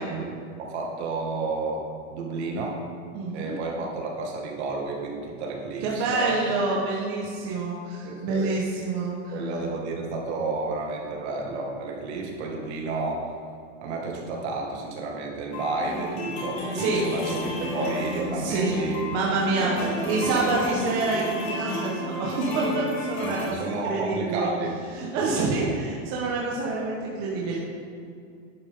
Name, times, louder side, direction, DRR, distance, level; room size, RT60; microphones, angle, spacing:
voice 1, 0.0-2.8 3.3-6.5 8.0-8.5 9.3-13.4 13.8-19.1 19.6-20.6 23.2-24.8 25.3-25.7, right 3 dB, 55° right, 0 dB, 2.0 m, -31 dB
voice 2, 3.1-3.6 5.8-9.4 16.7-17.4 18.4-19.7 20.1-24.5 24.9-27.6, right 3 dB, 35° right, -4 dB, 1.3 m, -27 dB
sound 1, 15.5-23.5, left 1 dB, 50° left, 2.7 m, -31 dB
11.0 x 9.2 x 3.7 m, 2.3 s
supercardioid pair, 170°, 39 cm